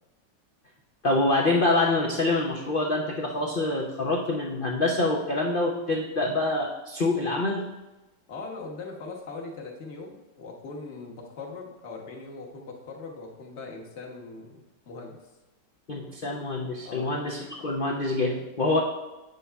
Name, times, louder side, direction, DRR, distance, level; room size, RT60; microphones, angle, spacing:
voice 1, 1.0-7.7 15.9-18.8, left 2 dB, 75° left, -1 dB, 0.5 m, -26 dB
voice 2, 8.3-14.6 14.9-15.2 16.8-17.1, left 3 dB, 45° left, 0 dB, 1.2 m, -40 dB
8.3 x 6.6 x 3.4 m, 1.1 s
omnidirectional pair, 2.0 m